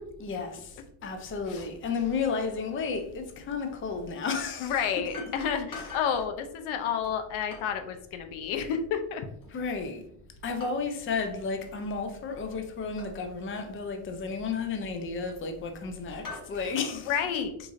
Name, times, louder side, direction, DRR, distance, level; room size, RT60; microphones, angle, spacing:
voice 1, 0.2-0.7 1.0-4.8 5.3-5.4 5.7-5.9 9.5-10.0 10.4-17.2, left 5 dB, 25° left, 0.5 m, -32 dB
sound 1, 1.1-1.3 1.6-1.8 3.5-3.6 4.8-6.2 7.0-7.8 9.4-9.8 10.6-11.2 11.5-11.8 13.0-13.2 13.8-13.9 14.8-15.6 16.1-16.5, left 4 dB, 45° left, 1.4 m, -45 dB
voice 2, 4.6-9.2 17.1-17.5, left 8 dB, 85° left, 0.7 m, -30 dB
4.7 x 2.5 x 2.6 m
cardioid pair, 120°, 47 cm